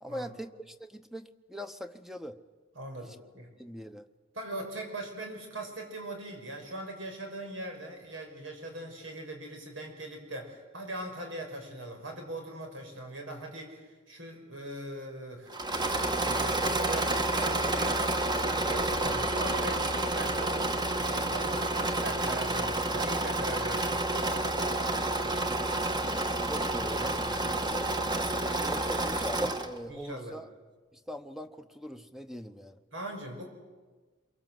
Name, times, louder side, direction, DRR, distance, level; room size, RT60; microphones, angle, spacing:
voice 1, 0.0-2.4 2.9-3.2 3.6-4.1 26.5-28.1 28.4-30.5 30.9-32.8, equal, ahead, 9 dB, 0.9 m, -42 dB
voice 2, 2.8-3.5 4.3-15.9 16.2-24.7 29.9-30.4 32.9-33.5, right 1 dB, 85° right, 3 dB, 6.1 m, -41 dB
Engine / Mechanisms, 15.5-29.8, right 2 dB, 20° right, 1.4 m, -29 dB
28.0 x 23.5 x 7.7 m, 1.4 s
head